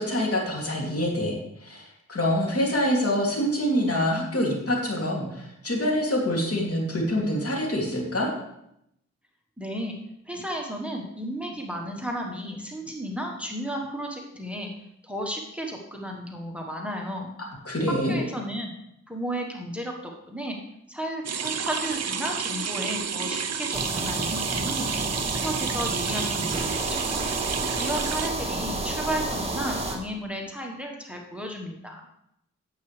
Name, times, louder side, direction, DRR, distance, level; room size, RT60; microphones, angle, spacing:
voice 1, 0.0-8.3 17.6-18.2, equal, 50° left, -2 dB, 2.7 m, -26 dB
voice 2, 9.6-10.0 10.2-14.7 15.0-17.3 17.9-18.7 19.1-20.6 20.9-25.1 25.4-27.1 27.8-32.0, equal, 5° right, 0 dB, 1.3 m, -33 dB
sound 1, 21.2-28.3, right 6 dB, 60° right, 0.6 m, -30 dB
sound 2, 23.7-30.0, right 2 dB, 20° right, 1.7 m, -30 dB
9.4 x 7.6 x 3.3 m, 0.80 s
cardioid pair, 55°, 29 cm